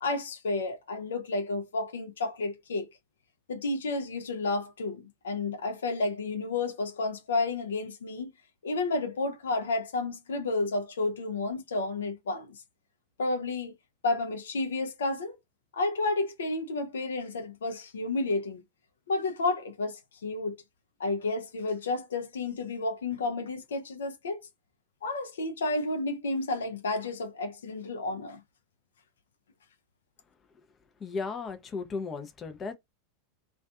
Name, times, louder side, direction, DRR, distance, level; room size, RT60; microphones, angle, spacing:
voice 1, 0.0-2.9 3.5-8.3 8.6-12.5 13.2-13.7 14.0-15.4 15.7-18.6 19.1-20.6 21.0-24.4 25.0-28.4, left 3 dB, 75° left, 0.5 m, -31 dB
voice 2, 31.0-32.7, left 4 dB, 25° left, 0.5 m, -35 dB
2.4 x 2.3 x 2.3 m
figure-of-eight pair, 90°, 0 cm